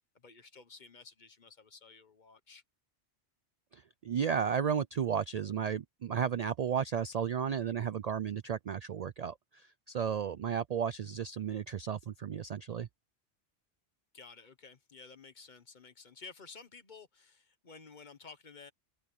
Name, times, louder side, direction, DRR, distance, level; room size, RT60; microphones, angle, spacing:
voice 1, 0.1-2.6 14.1-18.7, left 4 dB, 45° left, 1.2 m, -53 dB
voice 2, 3.7-12.9, right 7 dB, 55° right, 0.4 m, -33 dB
omnidirectional pair, 1.1 m